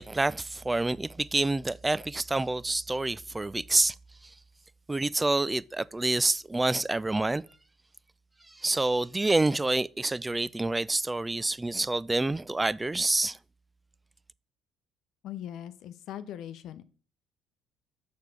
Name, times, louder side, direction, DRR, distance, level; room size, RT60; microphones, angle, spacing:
voice 1, 0.0-3.9 4.9-7.4 8.5-13.4, right 2 dB, 15° right, 0.4 m, -27 dB
voice 2, 15.2-16.8, left 11 dB, 65° left, 0.7 m, -40 dB
6.7 x 4.6 x 6.4 m
hypercardioid pair, 55°, 0 cm